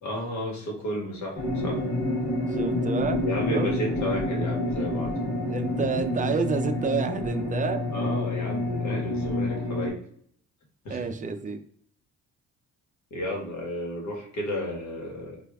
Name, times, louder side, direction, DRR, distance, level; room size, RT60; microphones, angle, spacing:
voice 1, 0.0-1.8 3.2-5.1 7.9-10.0 10.8-11.0 13.1-15.4, left 1 dB, 70° left, -1 dB, 1.3 m, -32 dB
sound 1, 1.3-9.9, left 1 dB, 85° left, 1.2 m, -28 dB
voice 2, 2.5-3.2 3.5-3.7 5.5-7.8 10.9-11.6, right 5 dB, 25° right, 8 dB, 0.4 m, -29 dB
4.5 x 2.4 x 2.3 m, 0.63 s
cardioid pair, 90°, 30 cm